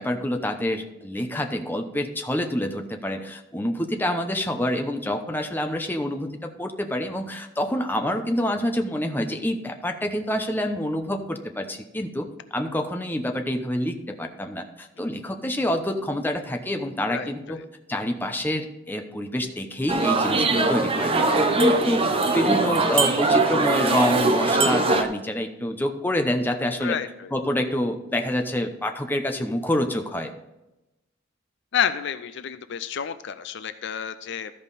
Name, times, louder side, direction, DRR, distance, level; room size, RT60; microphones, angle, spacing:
voice 1, 0.0-17.6 17.9-27.0 27.3-30.3, left 1 dB, 10° left, 5 dB, 0.7 m, -27 dB
voice 2, 17.1-17.6 21.3-21.5 26.8-27.3 31.7-34.5, left 8 dB, 60° left, 12 dB, 0.4 m, -30 dB
sound 1, 19.9-25.0, right 2 dB, 30° right, 0.8 m, -21 dB
13.5 x 5.4 x 4.1 m, 0.96 s
head